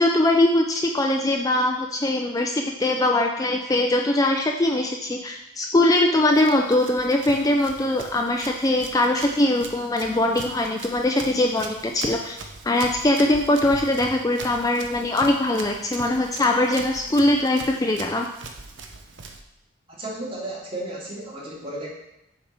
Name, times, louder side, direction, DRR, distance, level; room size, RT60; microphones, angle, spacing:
voice 1, 0.0-12.4 12.6-18.3, left 1 dB, 20° left, 2 dB, 0.4 m, -21 dB
Run, 6.2-19.4, right 3 dB, 65° right, 0.8 m, -41 dB
voice 2, 19.9-21.9, right 1 dB, 30° right, -4 dB, 2.0 m, -33 dB
6.9 x 4.7 x 6.5 m, 0.86 s
head